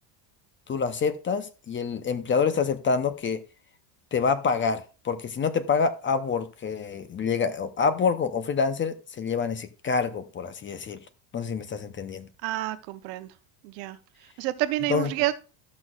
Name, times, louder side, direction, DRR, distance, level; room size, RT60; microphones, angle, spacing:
voice 1, 0.7-3.4 4.1-11.0 11.3-12.3 14.9-15.1, left 5 dB, 25° left, 12 dB, 0.6 m, -27 dB
voice 2, 12.4-13.4 13.6-15.3, right 16 dB, 85° right, 11 dB, 0.9 m, -29 dB
13.0 x 6.2 x 2.4 m, 0.34 s
cardioid pair, 125°, 50 cm